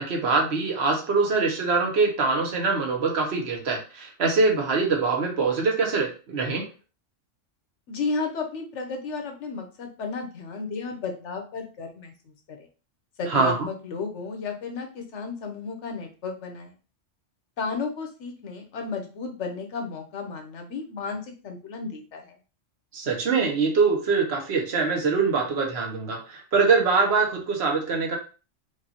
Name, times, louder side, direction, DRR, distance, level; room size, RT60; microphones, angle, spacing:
voice 1, 0.0-6.6 13.3-13.7 22.9-28.2, right 4 dB, 60° right, 1 dB, 1.2 m, -23 dB
voice 2, 7.9-12.7 13.2-16.7 17.6-22.3, left 4 dB, 70° left, 3 dB, 1.1 m, -33 dB
4.7 x 2.6 x 2.9 m, 0.35 s
omnidirectional pair, 1.3 m